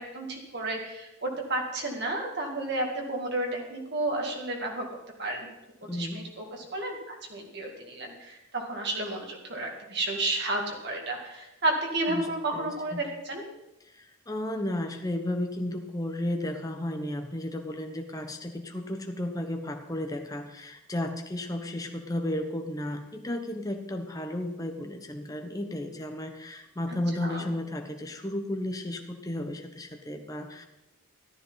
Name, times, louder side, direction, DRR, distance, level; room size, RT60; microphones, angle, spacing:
voice 1, 0.0-4.8 5.2-5.5 5.9-13.4 27.2-27.4, right 2 dB, 50° right, 1 dB, 2.4 m, -32 dB
voice 2, 5.8-6.2 12.1-12.3 12.5-13.0 13.8-30.6, left 1 dB, 15° left, 4 dB, 1.0 m, -33 dB
14.5 x 13.0 x 4.1 m, 0.97 s
head